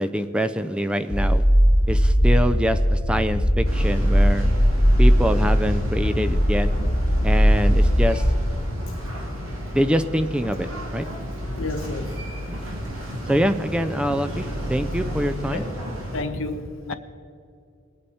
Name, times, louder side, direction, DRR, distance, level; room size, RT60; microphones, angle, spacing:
voice 1, 0.0-1.4 1.9-4.5 5.0-6.7 7.2-8.3 9.7-11.0 12.5-12.6 13.3-14.4 14.7-15.6, equal, 5° right, 11 dB, 0.4 m, -24 dB
sound 1, 1.1-8.6, equal, 25° left, 1.0 m, -19 dB
sound 2, 3.6-16.2, equal, 80° right, 2.2 m, -33 dB
voice 2, 11.5-12.2 15.5-15.7 16.1-16.9, left 2 dB, 70° left, 8 dB, 1.0 m, -31 dB
21.5 x 8.7 x 4.2 m, 2.5 s
head